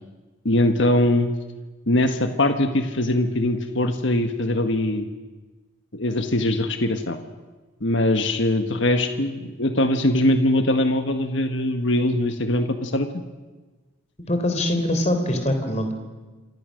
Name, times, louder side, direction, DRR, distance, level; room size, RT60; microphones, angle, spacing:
voice 1, 0.4-1.3 1.9-5.1 5.9-7.2 7.8-13.2, left 1 dB, 60° left, 7 dB, 1.5 m, -22 dB
voice 2, 14.3-15.9, left 1 dB, 30° left, 5 dB, 3.6 m, -23 dB
27.5 x 26.5 x 6.5 m, 1.3 s
head